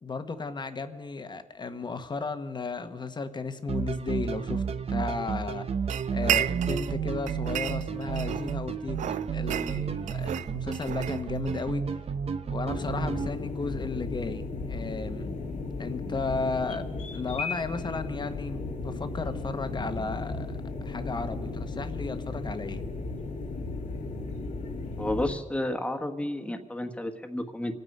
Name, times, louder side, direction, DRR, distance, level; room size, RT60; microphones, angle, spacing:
voice 1, 0.0-5.7 6.1-11.9 12.4-15.3 15.8-20.6 20.8-22.8, left 4 dB, 35° left, 9 dB, 1.2 m, -34 dB
sound 1, 3.7-13.3, right 6 dB, 50° right, 0.9 m, -32 dB
sound 2, 5.9-7.0 7.3-8.6 8.9-11.6, right 11 dB, 75° right, 0.4 m, -32 dB
sound 3, 12.6-25.4, left 3 dB, 70° left, 1.8 m, -35 dB
voice 2, 25.0-27.7, left 1 dB, 10° left, 5 dB, 1.4 m, -31 dB
27.0 x 9.4 x 5.4 m, 1.5 s
cardioid pair, 90°, 13 cm